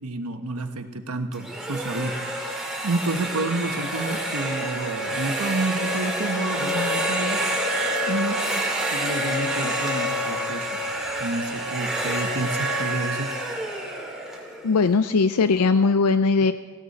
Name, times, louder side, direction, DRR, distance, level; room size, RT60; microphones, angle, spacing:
voice 1, 0.0-2.1 2.8-7.4 8.0-8.6 8.9-10.8 11.2-13.3, right 2 dB, 80° right, 6 dB, 1.2 m, -29 dB
sound 1, 1.3-15.2, equal, ahead, 2.1 m, -28 dB
voice 2, 14.6-16.5, left 4 dB, 85° left, 11 dB, 0.5 m, -19 dB
19.5 x 16.0 x 4.2 m, 1.5 s
head